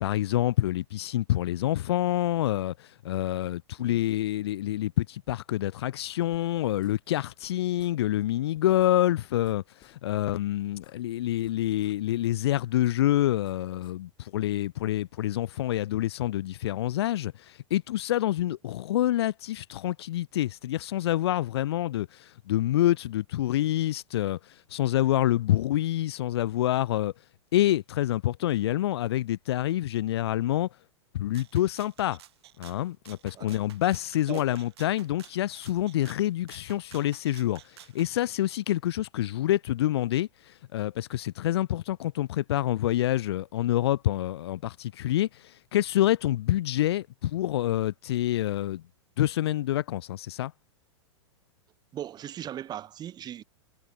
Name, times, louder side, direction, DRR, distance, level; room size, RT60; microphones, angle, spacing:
voice 1, 0.0-24.4 24.7-27.1 27.5-30.7 31.1-32.2 32.6-37.6 37.9-40.3 40.7-45.3 45.7-48.8 49.2-50.5, left 13 dB, 60° left, 0.9 m, -27 dB
sound 1, 6.3-7.5 7.8-8.0 8.2-8.3 8.5-10.0 10.3-12.0 12.2-14.0, left 12 dB, 30° left, 4.0 m, -60 dB
Rattle (instrument), 31.3-38.1, right 13 dB, 60° right, 3.3 m, -53 dB
voice 2, 51.9-53.4, right 11 dB, 25° right, 2.7 m, -38 dB
figure-of-eight pair, 95°, 15 cm